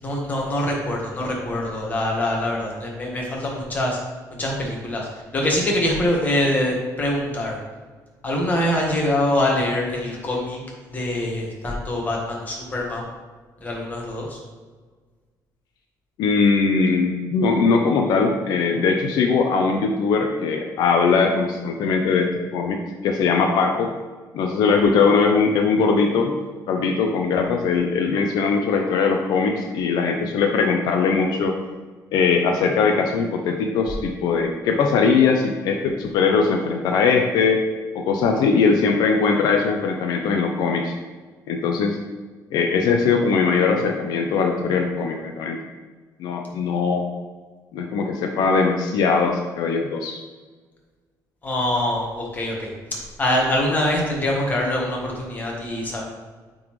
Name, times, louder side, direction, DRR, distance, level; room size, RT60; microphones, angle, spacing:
voice 1, 0.0-4.0 4.3-5.1 5.3-7.6 8.2-10.6 10.9-13.0 13.6-14.4 51.4-52.7 53.2-56.0, left 1 dB, 25° left, -2 dB, 1.4 m, -24 dB
voice 2, 16.2-23.9 24.3-26.3 26.7-31.6 32.1-37.6 37.9-40.9 41.5-42.0 42.5-45.6 46.2-47.1 47.7-50.2, left 5 dB, 70° left, 3 dB, 0.6 m, -20 dB
8.6 x 3.9 x 3.1 m, 1.4 s
cardioid pair, 160°, 7 cm